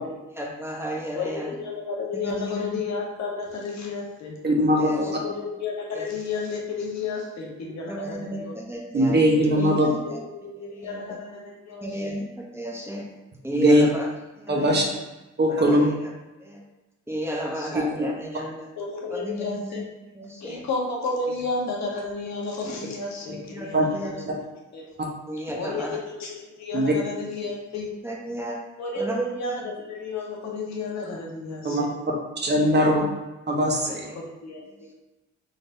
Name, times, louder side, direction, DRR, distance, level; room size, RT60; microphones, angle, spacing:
voice 1, 0.4-1.5 2.1-2.7 4.8-5.1 6.0-6.1 7.9-9.2 9.6-10.2 10.6-11.0 11.8-12.3 12.5-13.1 13.4-14.1 14.4-15.0 15.5-16.1 16.4-16.6 17.1-18.7 19.1-19.8 20.2-20.6 23.5-24.1 25.3-26.0 28.0-28.6 29.0-29.3 32.5-33.0 33.8-34.2, equal, 10° right, -2 dB, 0.8 m, -33 dB
voice 2, 1.1-4.3 5.0-8.8 9.5-12.1 17.4-17.8 18.8-19.8 20.4-24.9 25.6-27.9 28.8-31.9 33.8-34.6, left 3 dB, 65° left, -1 dB, 1.1 m, -32 dB
voice 3, 4.4-5.1 8.9-9.9 13.5-13.8 14.5-14.8 15.4-15.9 17.7-17.8 23.7-23.8 26.7-26.9 31.6-31.8 32.4-33.1 33.5-34.0, equal, 35° right, 0 dB, 0.9 m, -20 dB
4.0 x 3.3 x 2.6 m, 1.1 s
cardioid pair, 90°, 30 cm